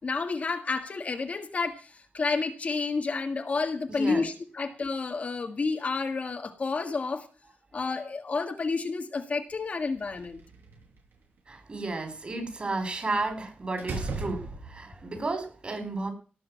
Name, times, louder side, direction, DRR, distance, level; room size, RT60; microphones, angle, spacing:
voice 1, 0.0-7.3 7.7-10.4, left 4 dB, 40° left, 6 dB, 1.6 m, -30 dB
voice 2, 3.9-4.3 11.5-16.1, right 3 dB, 30° right, 7 dB, 4.9 m, -33 dB
Slam, 9.9-11.0 13.1-13.3 13.8-15.0, right 3 dB, 80° right, 7.2 m, -36 dB
18.5 x 6.5 x 9.1 m, 0.39 s
wide cardioid pair, 140°, 3 cm